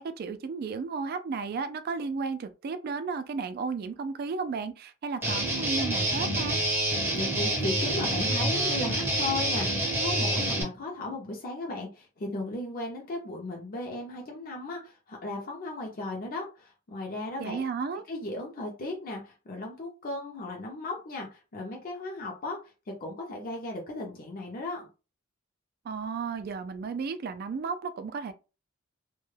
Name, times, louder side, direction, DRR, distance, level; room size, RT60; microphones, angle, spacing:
voice 1, 0.0-6.6 17.4-18.0 25.9-28.3, right 5 dB, 50° right, 0.3 m, -33 dB
Guitar, 5.2-10.6, right 1 dB, 10° right, 0.6 m, -27 dB
voice 2, 7.1-17.6 18.1-22.6 22.9-24.9, left 2 dB, 45° left, 0.6 m, -36 dB
2.2 x 2.1 x 3.1 m
head